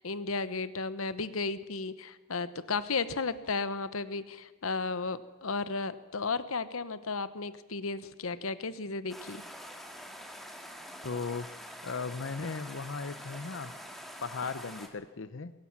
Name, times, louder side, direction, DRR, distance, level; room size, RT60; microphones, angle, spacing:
voice 1, 0.0-9.4, left 4 dB, 80° left, 14 dB, 1.1 m, -34 dB
sound 1, 9.1-14.9, equal, ahead, 2.2 m, -45 dB
voice 2, 11.0-11.5 11.8-13.7 14.2-15.5, left 4 dB, 60° left, 13 dB, 0.7 m, -37 dB
21.5 x 17.5 x 7.3 m, 1.2 s
head